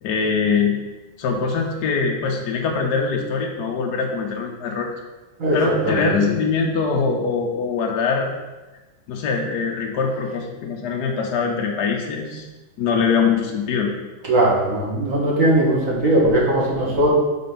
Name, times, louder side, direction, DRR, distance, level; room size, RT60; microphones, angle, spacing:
voice 1, 0.0-0.8 1.2-4.9 5.5-8.3 9.1-12.4 12.8-13.9, left 5 dB, 65° left, 0 dB, 1.1 m, -22 dB
voice 2, 5.4-6.1 14.3-17.1, right 1 dB, 40° right, -4 dB, 1.7 m, -19 dB
5.3 x 4.2 x 5.4 m, 1.1 s
omnidirectional pair, 2.3 m